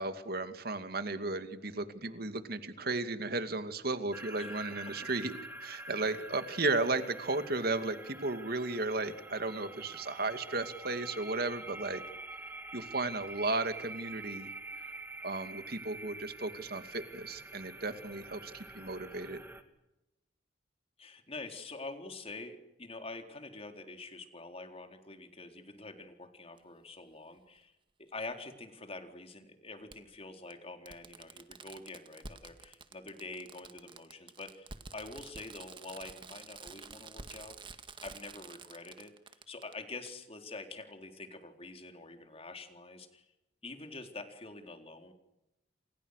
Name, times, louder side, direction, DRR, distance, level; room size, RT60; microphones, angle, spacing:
voice 1, 0.0-5.3 5.6-12.0 12.7-14.5 14.8-14.9 15.2-19.4, right 2 dB, 55° right, 9 dB, 2.4 m, -34 dB
sound 1, 4.1-19.6, right 2 dB, 10° right, 2.4 m, -46 dB
voice 2, 21.0-27.7 28.0-37.6 38.0-39.1 39.5-43.2 43.6-45.1, left 3 dB, 35° left, 6 dB, 3.8 m, -46 dB
Fireworks, 26.6-26.7 28.2-28.3 29.9-30.0 30.5-30.6 30.9-39.7 40.1-40.2, right 4 dB, 25° right, 1.9 m, -49 dB
29.0 x 28.0 x 6.6 m, 0.93 s
head